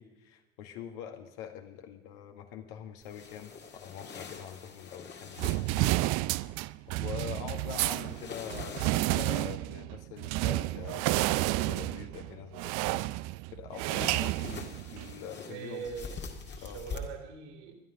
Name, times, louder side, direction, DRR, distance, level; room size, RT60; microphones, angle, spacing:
voice 1, 0.0-5.9 7.0-13.0 13.5-15.9 16.6-16.8, left 9 dB, 60° left, 5 dB, 1.9 m, -44 dB
sound 1, 3.0-6.1 8.1-9.6 13.9-17.0, left 5 dB, 30° left, 2.0 m, -44 dB
sound 2, 5.4-15.2, right 19 dB, 45° right, 0.5 m, -31 dB
voice 2, 15.5-17.7, right 6 dB, 60° right, 2 dB, 3.1 m, -42 dB
20.5 x 11.5 x 5.3 m, 1.0 s
figure-of-eight pair, 70°, 37 cm